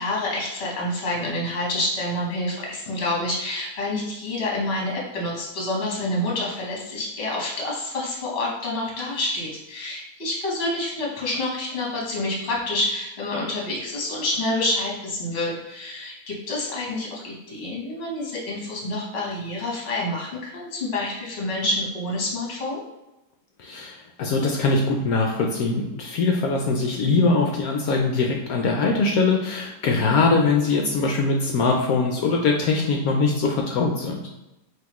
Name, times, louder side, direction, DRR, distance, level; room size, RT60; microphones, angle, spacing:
voice 1, 0.0-22.8, left 1 dB, 40° left, -3 dB, 1.3 m, -28 dB
voice 2, 23.6-34.2, left 3 dB, 70° left, 1 dB, 0.9 m, -22 dB
5.6 x 2.9 x 3.0 m, 0.96 s
omnidirectional pair, 1.8 m